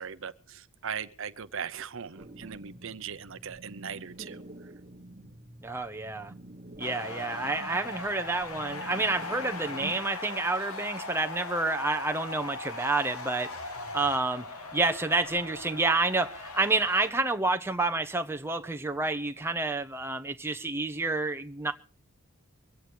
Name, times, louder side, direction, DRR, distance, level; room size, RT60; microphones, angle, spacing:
voice 1, 0.0-4.7, right 7 dB, 60° right, 0.7 m, -39 dB
sound 1, 2.2-10.0, right 1 dB, 35° right, 1.5 m, -47 dB
voice 2, 5.6-6.3 6.8-21.7, right 3 dB, 10° right, 0.8 m, -29 dB
sound 2, 6.8-17.1, left 3 dB, 85° left, 1.9 m, -39 dB
24.0 x 8.7 x 4.7 m
head